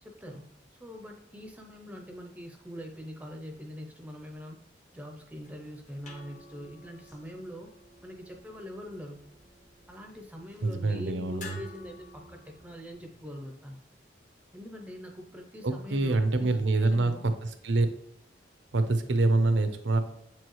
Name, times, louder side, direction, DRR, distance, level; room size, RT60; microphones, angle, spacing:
voice 1, 0.0-4.6 4.9-7.7 8.0-9.3 9.9-13.8 14.5-17.2, equal, 10° right, 2 dB, 0.6 m, -43 dB
sound 1, 5.4-13.3, left 2 dB, 40° left, 0.9 m, -52 dB
voice 2, 10.6-11.6 15.6-17.1 17.6-17.9 18.7-20.0, right 2 dB, 85° right, 9 dB, 0.7 m, -25 dB
7.0 x 4.6 x 3.1 m, 0.77 s
head